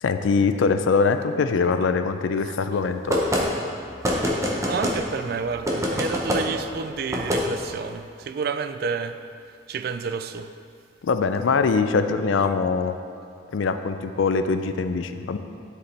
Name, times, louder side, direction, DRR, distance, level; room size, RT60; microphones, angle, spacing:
voice 1, 0.0-3.2 11.0-13.0 13.5-15.4, left 4 dB, 80° left, 0.4 m, -22 dB
voice 2, 2.4-3.0 4.7-9.2 9.7-10.5 12.4-12.5, right 5 dB, 50° right, 0.3 m, -30 dB
sound 1, 3.1-3.4 4.0-5.0 5.7-6.4 7.1-7.4, equal, 15° right, 0.8 m, -23 dB
11.0 x 4.9 x 3.3 m
head